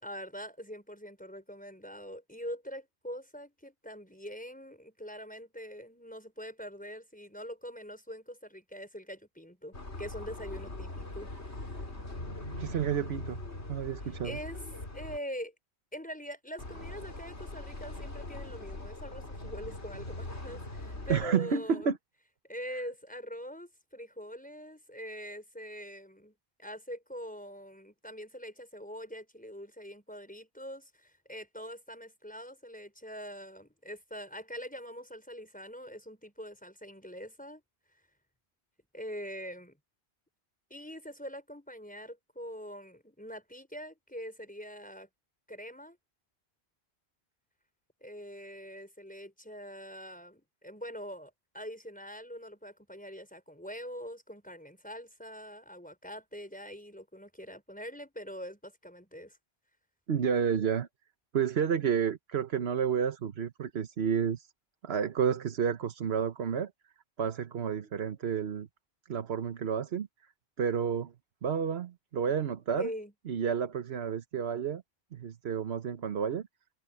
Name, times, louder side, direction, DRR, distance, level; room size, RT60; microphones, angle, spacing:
voice 1, 0.0-11.3 14.2-14.6 14.9-15.5 15.9-21.9 22.5-26.3 26.6-37.6 38.9-39.8 40.7-45.1 45.5-46.0 48.0-59.4 72.8-73.1, equal, 5° left, 5.2 m, -43 dB
sound 1, 9.7-15.2 16.6-21.3, left 2 dB, 85° left, 3.8 m, -41 dB
voice 2, 12.6-13.4 13.7-14.4 21.1-22.0 60.1-60.9 61.3-64.5 64.8-66.7 67.2-68.7 69.1-70.1 70.6-71.1 71.4-72.9 73.3-74.8 75.1-76.5, right 7 dB, 70° right, 1.2 m, -30 dB
omnidirectional pair, 1.1 m